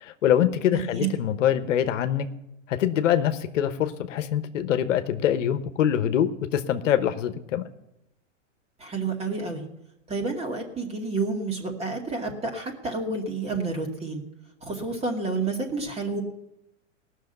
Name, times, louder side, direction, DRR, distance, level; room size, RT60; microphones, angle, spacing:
voice 1, 0.0-2.2 2.7-7.6, left 10 dB, 75° left, 10 dB, 1.2 m, -24 dB
voice 2, 0.7-1.1 8.8-9.7 10.1-14.2 14.6-16.2, right 3 dB, 15° right, 2 dB, 2.4 m, -29 dB
18.0 x 6.5 x 8.0 m, 0.86 s
hypercardioid pair, 135°, 38 cm